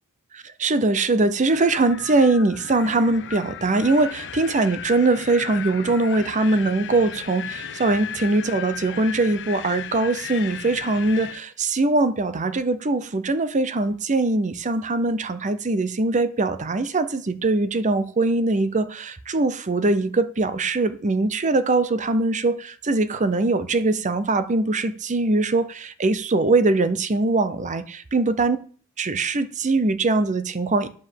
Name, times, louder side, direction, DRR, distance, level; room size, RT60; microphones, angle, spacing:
voice 1, 0.3-28.6 29.0-30.9, right 2 dB, 35° right, 0.7 m, -22 dB
Wind, 1.5-11.4, left 8 dB, 55° left, 0.8 m, -36 dB
9.8 x 5.1 x 7.6 m
head